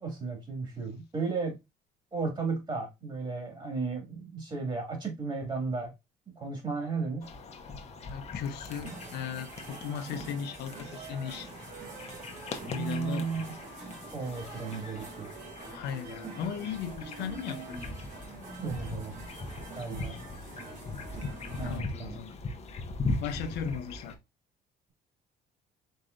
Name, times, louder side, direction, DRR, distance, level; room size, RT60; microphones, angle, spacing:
voice 1, 0.0-1.6 2.1-5.9 6.4-7.3 12.7-13.5 14.1-15.3 18.6-19.1 19.7-20.2 21.6-22.2, right 4 dB, 25° right, 2.1 m, -34 dB
sound 1, 7.2-24.2, left 3 dB, 40° left, 0.9 m, -40 dB
voice 2, 8.1-11.5 12.5-13.3 15.7-17.8 20.1-20.2 21.2-22.3 23.2-24.2, left 7 dB, 75° left, 0.6 m, -37 dB
sound 2, 8.7-21.8, right 3 dB, 50° right, 1.8 m, -45 dB
4.4 x 3.4 x 2.5 m
cardioid pair, 110°, 17 cm